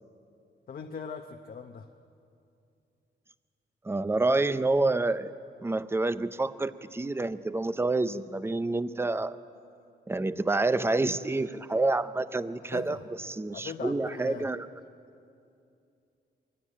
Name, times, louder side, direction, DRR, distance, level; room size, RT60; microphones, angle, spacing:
voice 1, 0.7-1.9 12.7-14.5, left 6 dB, 50° left, 5 dB, 0.8 m, -41 dB
voice 2, 3.8-5.3 5.6-9.4 10.1-14.7, right 2 dB, 15° right, 14 dB, 0.5 m, -28 dB
23.0 x 16.0 x 9.9 m, 2.6 s
wide cardioid pair, 165°, 19 cm